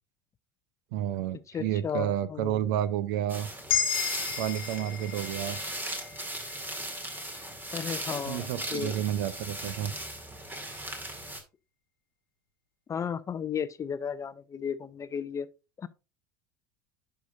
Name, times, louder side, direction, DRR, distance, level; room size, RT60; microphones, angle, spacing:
voice 1, 0.9-3.5 4.4-5.6 8.3-9.9, right 11 dB, 65° right, 0.6 m, -30 dB
voice 2, 1.5-2.7 7.7-9.0 12.9-15.5 15.8-15.9, left 7 dB, 25° left, 0.6 m, -34 dB
sound 1, 3.3-11.4, right 1 dB, 15° right, 2.0 m, -38 dB
sound 2, 3.7-8.0, left 7 dB, 80° left, 1.2 m, -34 dB
10.5 x 5.7 x 2.6 m
hypercardioid pair, 75°, 12 cm